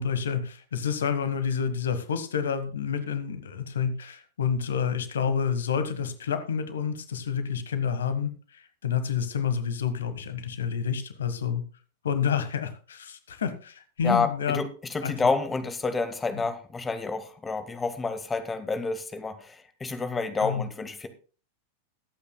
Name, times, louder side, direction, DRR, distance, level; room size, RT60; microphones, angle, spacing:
voice 1, 0.0-11.6 12.0-14.6 15.0-15.1 20.4-20.6, left 7 dB, 65° left, 11 dB, 1.3 m, -29 dB
voice 2, 14.0-21.1, left 4 dB, 15° left, 11 dB, 1.1 m, -29 dB
21.0 x 8.5 x 2.2 m, 0.37 s
figure-of-eight pair, 90°, 0 cm